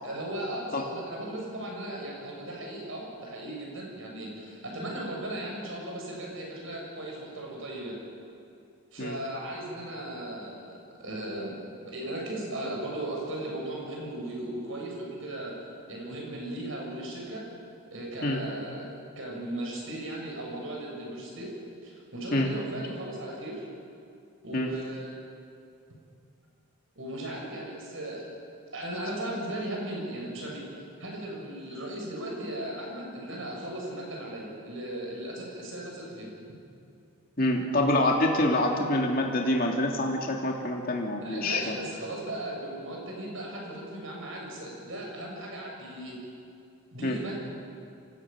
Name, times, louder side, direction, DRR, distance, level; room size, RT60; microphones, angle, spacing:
voice 1, 0.0-8.0 8.9-15.6 15.9-17.5 17.9-18.9 19.2-21.5 21.8-23.6 24.4-25.1 27.0-28.3 28.7-30.6 31.0-36.3 41.2-46.2 46.9-47.3, right 1 dB, 65° right, -1 dB, 7.1 m, -37 dB
voice 2, 37.4-41.7 47.0-47.2, left 1 dB, 40° left, 0 dB, 2.6 m, -26 dB
25.5 x 16.5 x 8.8 m, 2.5 s
head